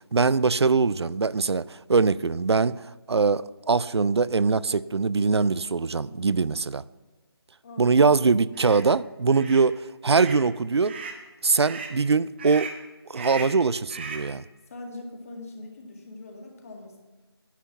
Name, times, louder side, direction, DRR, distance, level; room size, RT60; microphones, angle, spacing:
voice 1, 0.1-6.8 7.8-11.0 11.4-12.7 13.1-14.4, right 4 dB, 85° right, 0.4 m, -22 dB
voice 2, 7.6-8.1 14.7-17.0, left 2 dB, 35° left, 2.0 m, -42 dB
sound 1, 8.5-8.8 9.3-9.7 10.1-10.4 10.8-11.2 11.6-12.0 12.4-12.8 13.1-13.6 13.9-14.3, right 4 dB, 25° right, 1.0 m, -38 dB
10.0 x 8.2 x 5.8 m
figure-of-eight pair, 160°, 13 cm